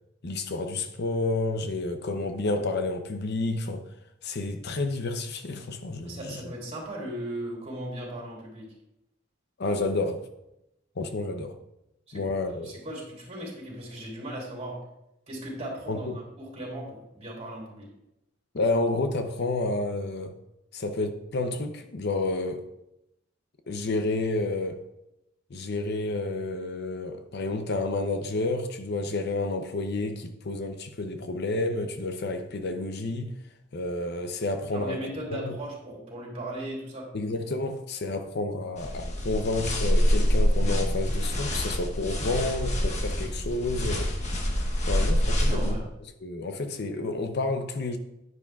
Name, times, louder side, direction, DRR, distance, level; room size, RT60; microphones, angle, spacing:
voice 1, 0.2-3.9 4.2-6.2 9.6-10.3 11.0-11.6 12.1-12.8 15.9-16.1 18.5-20.3 20.7-22.7 23.7-24.8 25.5-33.3 33.7-35.0 35.3-35.5 37.1-44.1 44.9-45.8 46.2-48.0, left 2 dB, 55° left, 0.7 m, -30 dB
voice 2, 6.0-8.7 12.1-12.3 12.6-14.8 15.3-17.9 34.7-37.1 45.4-45.9, right 1 dB, 35° right, 3.1 m, -37 dB
sound 1, 38.8-45.8, equal, 35° left, 1.3 m, -26 dB
10.0 x 9.6 x 2.4 m
head